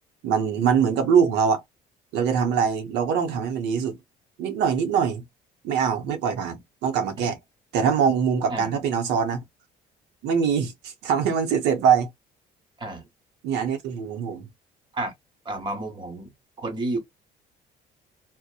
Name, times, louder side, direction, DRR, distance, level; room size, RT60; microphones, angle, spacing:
voice 1, 0.2-1.6 2.1-4.0 4.4-5.2 5.6-7.4 7.7-9.4 10.2-12.1 13.4-14.5, right 7 dB, 85° right, 0.7 m, -23 dB
voice 2, 15.4-16.3 16.6-17.0, right 2 dB, 25° right, 1.1 m, -30 dB
2.7 x 2.0 x 2.2 m
cardioid pair, 110°, 17 cm